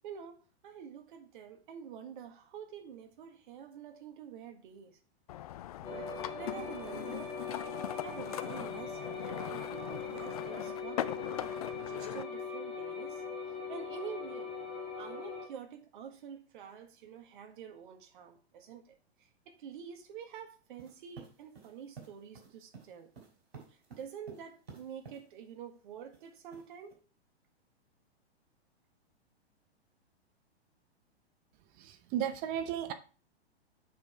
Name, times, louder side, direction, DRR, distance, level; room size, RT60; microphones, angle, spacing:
voice 1, 0.0-0.4 0.6-5.0 5.8-7.3 8.0-11.2 11.5-14.5 15.0-23.1 23.7-27.0, right 8 dB, 50° right, 1.7 m, -48 dB
sound 1, 5.3-12.2, left 13 dB, 35° left, 0.4 m, -41 dB
sound 2, 5.8-15.5, left 4 dB, 20° left, 2.2 m, -41 dB
sound 3, 20.8-25.2 26.1-26.9, right 5 dB, 65° right, 3.3 m, -52 dB
voice 2, 31.8-32.9, right 10 dB, 25° right, 0.8 m, -34 dB
7.3 x 5.7 x 4.5 m
figure-of-eight pair, 110°, 32 cm